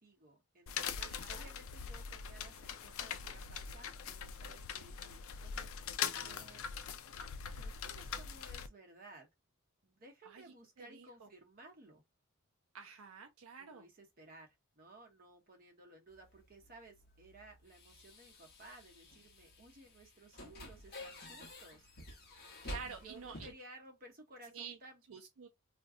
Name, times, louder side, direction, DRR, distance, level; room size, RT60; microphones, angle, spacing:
voice 1, 0.0-6.7 7.5-9.3 9.8-12.0 13.6-21.9 22.8-25.0, right 2 dB, 40° right, 0.9 m, -58 dB
sound 1, 0.7-8.7, left 7 dB, 70° left, 0.4 m, -42 dB
voice 2, 1.0-1.5 10.3-10.4 10.8-11.3 12.7-13.8 22.6-23.5 24.5-24.8 25.1-25.5, right 6 dB, 75° right, 0.5 m, -49 dB
sound 2, 16.1-23.5, left 1 dB, 45° left, 0.9 m, -51 dB
2.5 x 2.2 x 3.6 m
head